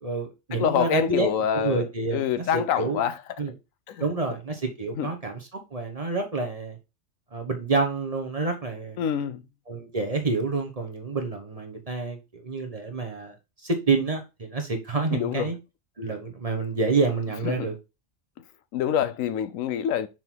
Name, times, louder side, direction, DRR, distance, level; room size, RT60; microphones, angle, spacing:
voice 1, 0.0-2.2 2.5-3.0 3.4-3.5 4.0-6.8 7.3-9.0 9.7-13.3 13.6-15.6 16.0-17.7, right 3 dB, 30° right, 1.0 m, -28 dB
voice 2, 0.5-3.2 3.9-4.1 5.0-5.1 9.0-9.4 15.1-15.5 17.4-17.7 18.7-20.1, left 9 dB, 85° left, 1.0 m, -26 dB
6.0 x 3.8 x 4.4 m
omnidirectional pair, 1.4 m